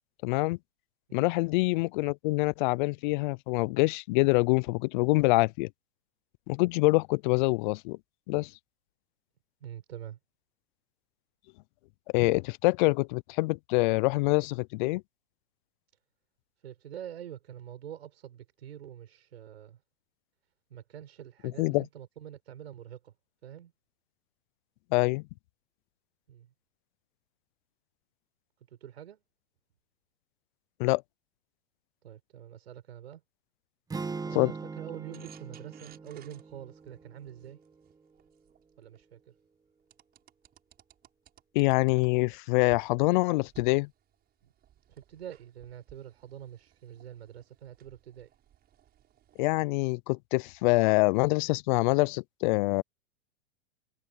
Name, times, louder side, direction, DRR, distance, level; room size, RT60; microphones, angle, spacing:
voice 1, 0.2-0.6 1.1-5.7 6.5-8.0 8.3-8.5 12.1-15.0 21.6-21.8 24.9-25.2 30.8-31.0 34.3-34.5 41.5-43.9 49.4-52.8, left 24 dB, 50° left, 0.5 m, -25 dB
voice 2, 9.6-10.2 16.6-19.8 20.7-23.2 23.4-23.7 26.3-26.5 28.6-29.2 32.0-33.2 34.2-37.6 38.8-39.4 44.4-44.5 44.9-48.3, right 10 dB, 85° right, 6.3 m, -46 dB
sound 1, 33.9-38.1, right 4 dB, 10° right, 1.6 m, -41 dB
sound 2, 35.1-39.0 39.9-42.4 42.7-42.9 43.4-49.5, right 11 dB, 30° right, 6.8 m, -58 dB
hypercardioid pair, 120°, 31 cm